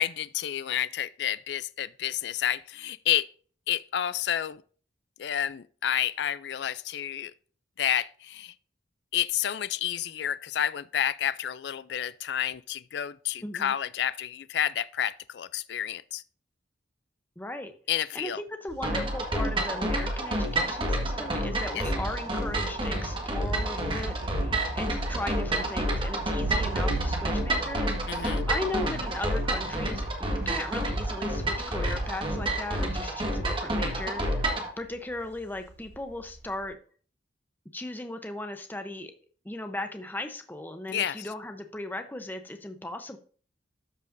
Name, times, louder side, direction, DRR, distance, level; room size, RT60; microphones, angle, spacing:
voice 1, 0.0-3.3 3.7-4.6 5.2-7.3 7.8-8.5 9.1-16.2 17.9-18.4 21.7-21.8 28.1-28.4 40.9-41.3, left 10 dB, 65° left, 0.4 m, -30 dB
voice 2, 13.4-13.7 17.4-17.7 18.1-34.5 34.8-36.8 37.7-39.1 39.4-43.2, left 2 dB, 10° left, 0.7 m, -37 dB
Thunder, 18.7-36.7, right 3 dB, 65° right, 0.6 m, -40 dB
sound 1, 18.8-34.7, right 1 dB, 30° right, 1.6 m, -29 dB
13.0 x 5.3 x 2.6 m
head